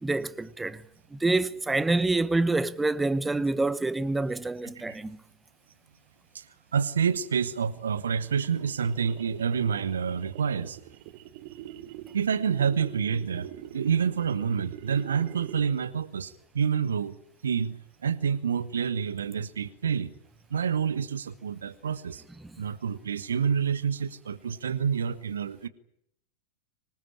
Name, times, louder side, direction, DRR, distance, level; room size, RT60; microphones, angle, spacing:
voice 1, 0.0-0.8 1.1-5.2, right 2 dB, 10° right, 1.0 m, -27 dB
voice 2, 6.7-10.8 12.1-17.2 17.4-20.1 20.5-22.2 22.6-25.7, right 7 dB, 70° right, 1.2 m, -28 dB
sound 1, 7.2-15.9, right 12 dB, 50° right, 1.1 m, -45 dB
25.0 x 19.5 x 8.8 m
figure-of-eight pair, 90°, 0 cm